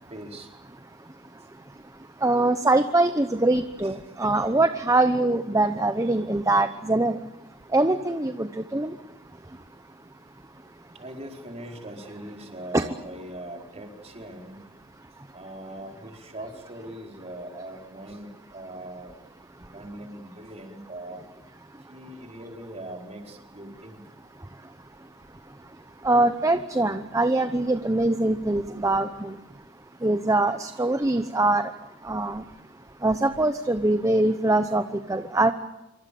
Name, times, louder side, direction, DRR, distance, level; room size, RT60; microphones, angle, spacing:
voice 1, 0.1-0.5 11.0-14.6 15.3-19.2 19.7-21.2 21.9-24.0 30.7-30.8, right 1 dB, 35° right, 4.6 m, -41 dB
voice 2, 2.2-7.2 7.7-8.9 12.7-12.8 26.0-29.4 30.0-31.7 32.0-32.4 33.0-34.8 35.1-35.5, right 2 dB, 15° right, 0.9 m, -23 dB
27.0 x 24.0 x 8.6 m
head